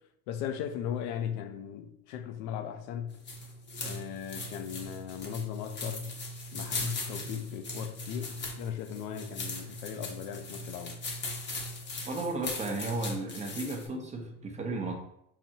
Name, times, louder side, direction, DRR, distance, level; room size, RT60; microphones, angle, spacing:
voice 1, 0.3-3.2 3.8-6.1 6.5-11.0, left 9 dB, 75° left, 0.6 m, -37 dB
sound 1, 3.1-13.9, left 2 dB, 25° left, 0.8 m, -39 dB
voice 2, 12.1-14.9, right 2 dB, 15° right, 0.7 m, -34 dB
5.8 x 2.0 x 2.7 m
supercardioid pair, 110°, 45 cm